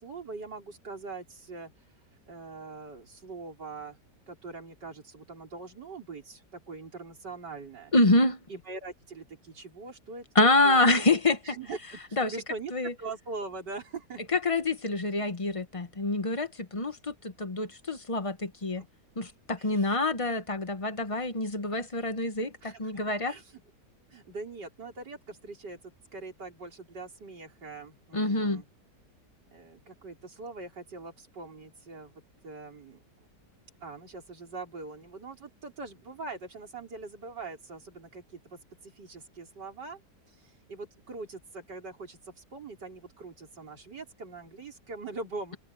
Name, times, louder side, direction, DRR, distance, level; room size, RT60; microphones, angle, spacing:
voice 1, 0.0-1.7 2.3-4.0 4.3-7.9 8.5-10.3 10.6-10.9 11.4-14.2 18.8-18.9 19.6-20.0 22.6-23.6 24.1-28.7 29.5-33.3 33.8-40.0 40.3-45.6, right 3 dB, 85° right, 5.2 m, -42 dB
voice 2, 7.9-8.4 10.3-11.4 12.2-12.3 12.7-12.9 14.3-18.8 19.2-23.3 28.1-28.6, left 2 dB, 20° left, 1.0 m, -26 dB
omnidirectional pair, 1.8 m